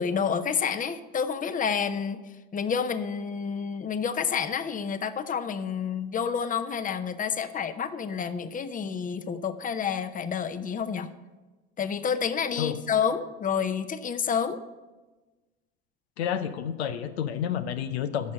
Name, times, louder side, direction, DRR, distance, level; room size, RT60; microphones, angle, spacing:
voice 1, 0.0-2.2 2.5-11.1 11.8-14.6, left 7 dB, 25° left, 12 dB, 0.7 m, -29 dB
voice 2, 16.2-18.3, left 9 dB, 90° left, 11 dB, 0.6 m, -30 dB
10.5 x 6.4 x 6.4 m, 1.2 s
hypercardioid pair, 75°, 31 cm